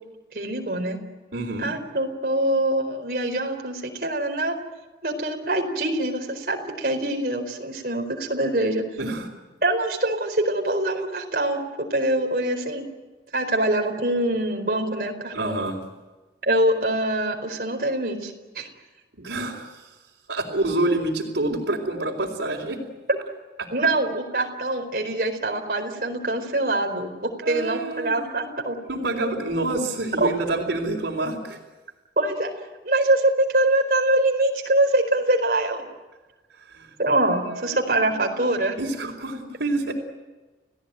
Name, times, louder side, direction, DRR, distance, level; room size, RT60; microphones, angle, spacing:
voice 1, 0.3-1.0 1.6-4.5 5.0-8.8 9.6-12.8 13.3-15.6 16.4-18.7 23.1-23.2 23.7-28.8 30.2-30.3 32.2-32.5 32.8-35.9 37.0-38.7, right 1 dB, 55° right, 3 dB, 4.4 m, -24 dB
voice 2, 1.3-1.7 9.0-9.3 15.3-15.8 19.2-19.9 20.3-22.8 23.6-23.7 27.4-28.3 28.9-31.6 36.7-36.9 37.3-39.9, right 2 dB, 80° right, -5 dB, 4.0 m, -28 dB
30.0 x 17.5 x 9.2 m, 1.2 s
head